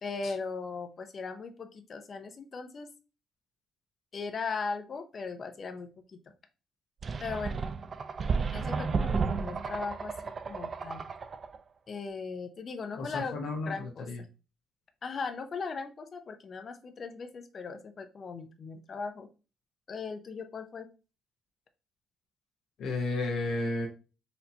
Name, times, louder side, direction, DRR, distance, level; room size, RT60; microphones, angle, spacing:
voice 1, 0.0-2.9 4.1-6.2 7.2-7.6 8.5-11.0 11.9-13.3 13.7-14.1 15.0-19.3 19.9-20.9, left 4 dB, 45° left, 7 dB, 0.6 m, -38 dB
sound 1, 7.0-11.6, right 5 dB, 45° right, 0.3 m, -32 dB
voice 2, 12.9-14.2 22.8-23.9, left 2 dB, 70° left, 1 dB, 0.8 m, -33 dB
4.2 x 2.8 x 2.7 m, 0.32 s
cardioid pair, 85°, 0 cm